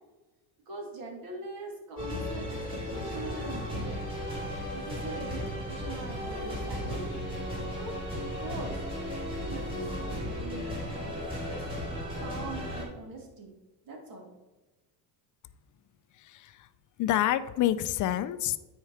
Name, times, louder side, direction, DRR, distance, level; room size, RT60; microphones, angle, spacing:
voice 1, 0.7-4.0 4.7-7.1 7.8-8.0 8.4-8.8 9.4-11.6 12.2-13.6 13.9-14.3, right 2 dB, 50° right, 1 dB, 2.1 m, -42 dB
sound 1, 2.0-12.9, equal, 10° right, 2.8 m, -35 dB
voice 2, 16.2-16.7 17.0-18.6, left 12 dB, 45° left, 14 dB, 0.4 m, -28 dB
8.9 x 4.7 x 4.6 m, 1.1 s
cardioid pair, 140°, 44 cm